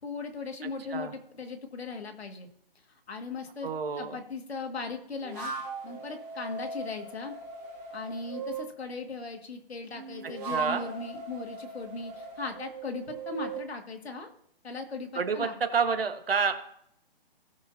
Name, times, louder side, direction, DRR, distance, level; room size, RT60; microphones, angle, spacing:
voice 1, 0.0-2.5 3.1-5.5 5.8-7.3 7.9-14.3 14.6-15.5, left 4 dB, 85° left, 4 dB, 2.1 m, -38 dB
voice 2, 3.6-4.2 10.5-10.8 15.1-16.7, right 5 dB, 65° right, 7 dB, 1.4 m, -29 dB
sound 1, 5.2-8.7 9.9-13.7, right 4 dB, 15° right, 2.1 m, -39 dB
17.5 x 6.4 x 2.8 m, 0.70 s
hypercardioid pair, 180°, 31 cm